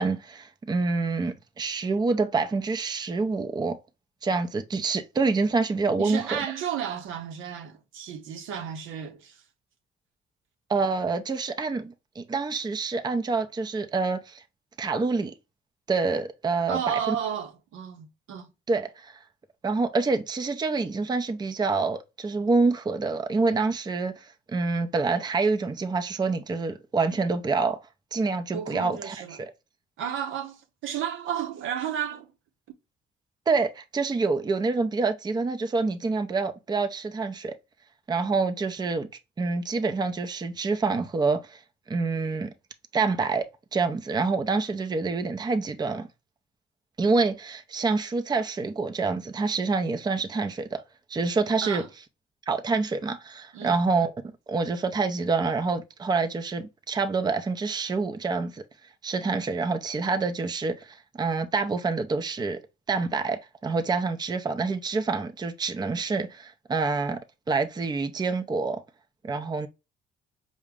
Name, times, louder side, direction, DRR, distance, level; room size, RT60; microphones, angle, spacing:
voice 1, 0.0-3.8 4.2-6.4 10.7-14.4 14.8-15.3 15.9-17.1 18.7-19.2 19.6-27.8 28.1-29.5 33.5-37.5 38.1-39.1 39.4-41.6 41.9-42.5 42.9-43.4 43.7-46.1 47.0-50.8 51.1-51.8 52.5-54.1 54.5-58.6 59.0-62.6 62.9-67.2 67.5-68.8 69.2-69.7, right 4 dB, 20° right, 0.5 m, -27 dB
voice 2, 6.0-9.4 16.7-18.5 28.5-29.4 30.0-32.3 51.6-51.9 53.5-53.8, right 9 dB, 85° right, 0.8 m, -32 dB
4.8 x 2.1 x 3.4 m
cardioid pair, 90°, 20 cm